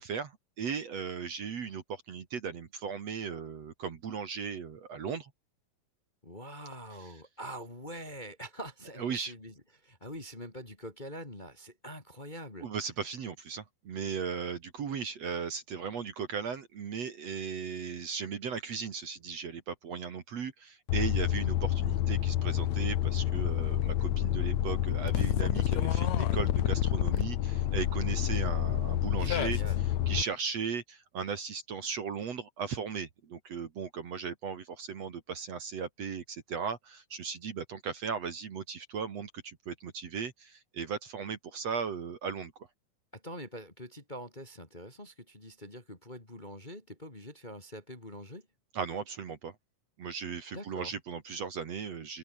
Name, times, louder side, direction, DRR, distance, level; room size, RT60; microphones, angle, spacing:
voice 1, 0.0-5.3 9.0-9.3 12.6-29.6 30.1-42.5 48.7-49.6 50.0-52.2, right 6 dB, 50° right, 2.8 m, -37 dB
voice 2, 6.2-12.7 29.2-29.9 43.1-48.5 50.5-50.9, equal, 15° left, 2.3 m, -44 dB
sound 1, 20.9-30.2, left 12 dB, 65° left, 2.1 m, -28 dB
open air
omnidirectional pair, 4.1 m